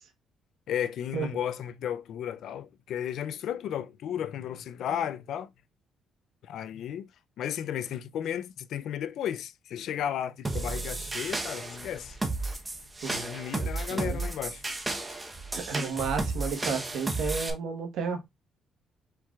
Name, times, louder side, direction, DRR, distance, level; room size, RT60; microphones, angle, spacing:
voice 1, 0.7-5.5 6.4-7.1 7.4-12.2 13.1-14.6, left 9 dB, 70° left, 0.4 m, -34 dB
sound 1, 10.4-17.5, right 2 dB, 15° right, 0.9 m, -33 dB
voice 2, 13.0-14.2 15.5-18.2, right 5 dB, 75° right, 1.2 m, -33 dB
4.6 x 4.4 x 2.4 m
cardioid pair, 115°, 0 cm